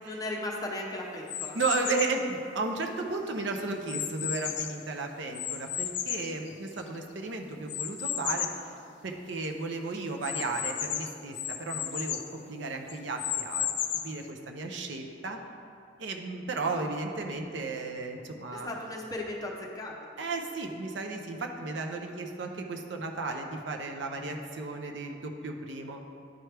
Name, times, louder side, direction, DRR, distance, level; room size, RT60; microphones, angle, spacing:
voice 1, 0.0-1.6 18.5-20.0, left 1 dB, 20° left, -1 dB, 0.7 m, -36 dB
sound 1, 1.3-2.2 2.9-4.9 5.4-7.0 7.7-8.7 9.1-9.2 9.4-9.5 10.2-12.3 12.9-14.2, left 10 dB, 60° left, 0.4 m, -34 dB
voice 2, 1.5-8.5 9.0-13.7 13.9-15.4 16.0-18.7 20.2-26.0, right 3 dB, 65° right, 3 dB, 0.6 m, -34 dB
10.5 x 4.5 x 3.3 m, 2.5 s
head